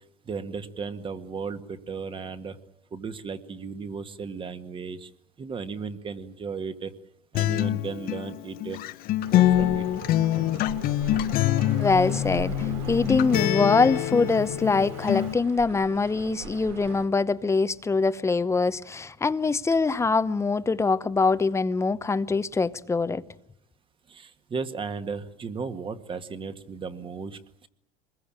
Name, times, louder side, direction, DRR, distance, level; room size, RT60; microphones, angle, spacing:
voice 1, 0.2-2.6 2.9-5.1 5.4-6.9 7.3-8.8 9.3-9.9 24.1-27.7, right 5 dB, 25° right, 1.8 m, -35 dB
Acoustic guitar, 7.3-15.3, left 14 dB, 50° left, 1.0 m, -25 dB
sound 1, 9.2-17.1, right 6 dB, 75° right, 3.8 m, -38 dB
voice 2, 11.8-23.2, left 4 dB, 15° left, 0.9 m, -24 dB
24.0 x 21.5 x 8.9 m
supercardioid pair, 115°, 19 cm